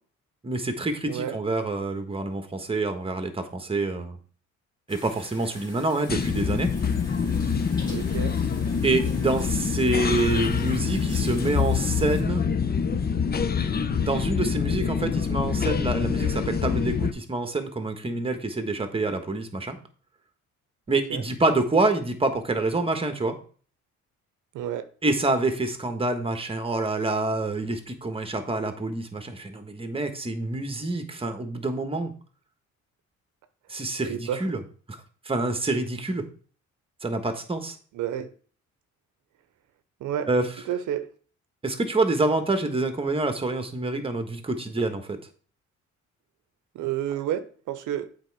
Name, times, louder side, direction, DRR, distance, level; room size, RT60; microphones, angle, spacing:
voice 1, 0.4-4.2 4.9-6.7 8.8-12.4 13.9-19.8 20.9-23.4 25.0-32.1 33.7-34.6 34.9-35.0 35.2-36.2 37.0-37.7 40.3-40.5 41.6-45.2, right 2 dB, 20° right, 1.3 m, -27 dB
voice 2, 1.0-1.4 7.9-8.4 21.1-21.2 24.5-24.9 34.0-34.5 37.9-38.3 40.0-40.3 40.7-41.1 46.7-48.1, right 10 dB, 80° right, 0.7 m, -30 dB
sound 1, 4.9-12.2, left 1 dB, 15° left, 2.6 m, -46 dB
sound 2, 6.1-17.1, left 6 dB, 30° left, 0.7 m, -26 dB
8.0 x 4.4 x 4.7 m
cardioid pair, 90°, 30 cm